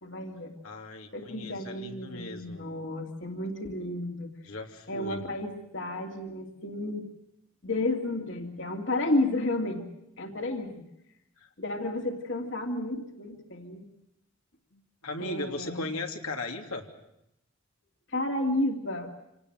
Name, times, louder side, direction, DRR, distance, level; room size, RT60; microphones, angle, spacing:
voice 1, 0.0-0.5 1.1-4.3 4.9-7.1 7.6-9.8 10.2-10.8 11.6-13.9 15.2-15.9 18.1-19.1, left 2 dB, 55° left, 3 dB, 2.8 m, -32 dB
voice 2, 0.6-2.6 4.4-5.2 11.4-11.5 14.7-16.8, left 2 dB, 80° left, 3 dB, 3.1 m, -37 dB
27.0 x 19.0 x 8.0 m, 0.84 s
head